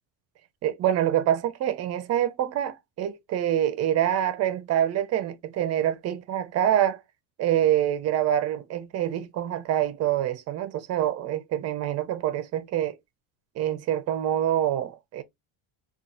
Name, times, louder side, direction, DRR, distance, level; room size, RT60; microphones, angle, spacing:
voice 1, 0.6-7.0 7.4-13.0 13.6-15.2, right 11 dB, 40° right, 0.5 m, -26 dB
4.1 x 2.4 x 2.5 m
cardioid pair, 160°, 42 cm